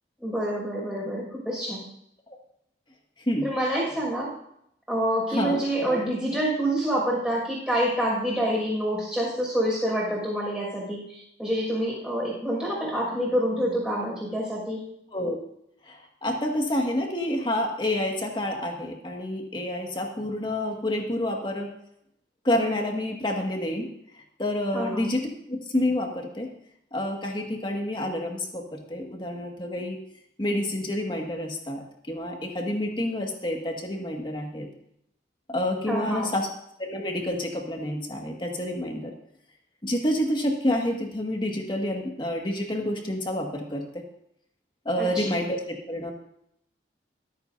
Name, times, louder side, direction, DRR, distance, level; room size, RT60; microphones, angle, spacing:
voice 1, 0.2-1.8 3.4-4.3 4.9-14.8 24.7-25.1 35.9-36.3 45.0-45.4, right 1 dB, 5° right, -4 dB, 6.0 m, -27 dB
voice 2, 5.3-5.6 15.1-15.4 15.9-21.7 22.4-23.9 24.4-25.2 25.5-26.5 26.9-30.0 30.4-34.7 35.5-36.5 36.8-39.1 39.8-44.0 44.9-46.1, left 1 dB, 30° left, 1 dB, 1.9 m, -28 dB
24.0 x 8.8 x 2.7 m, 0.75 s
head